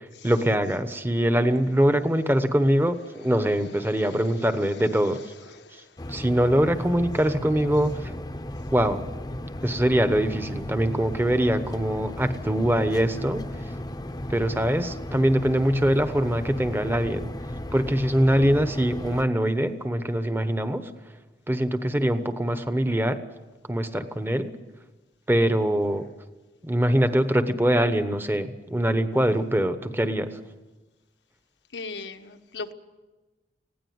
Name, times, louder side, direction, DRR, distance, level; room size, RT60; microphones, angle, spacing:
voice 1, 0.2-5.2 6.1-8.1 8.7-9.0 9.6-13.4 14.3-17.3 17.7-20.9 21.5-23.2 23.7-24.5 25.3-26.0 26.6-30.3, right 1 dB, 10° right, 10 dB, 1.1 m, -23 dB
sound 1, 6.0-19.2, left 1 dB, 20° left, 0.8 m, -35 dB
voice 2, 31.7-32.7, left 4 dB, 90° left, 7 dB, 1.3 m, -36 dB
20.0 x 16.5 x 9.5 m, 1.2 s
head